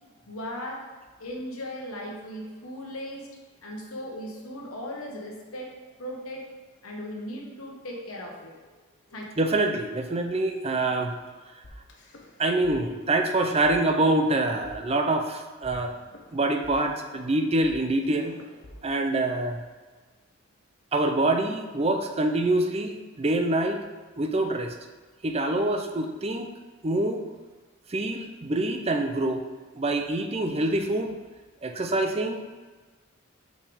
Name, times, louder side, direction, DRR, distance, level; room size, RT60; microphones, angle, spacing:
voice 1, 0.3-0.8 1.2-3.3 3.6-5.7 6.0-6.4 6.8-8.7 9.1-9.2, equal, 75° left, -1 dB, 1.3 m, -37 dB
voice 2, 9.4-11.2 12.4-15.9 16.3-18.4 18.8-19.6 20.9-23.9 24.2-24.7 25.2-26.5 26.8-27.2 27.9-29.4 29.7-31.1 31.6-32.4, right 2 dB, 25° right, 5 dB, 0.5 m, -25 dB
sound 1, 11.6-12.7 13.0-13.2 13.6-13.7 14.3-15.3 15.6-19.6, left 1 dB, 50° left, 0.9 m, -49 dB
6.6 x 5.5 x 3.5 m, 1.3 s
head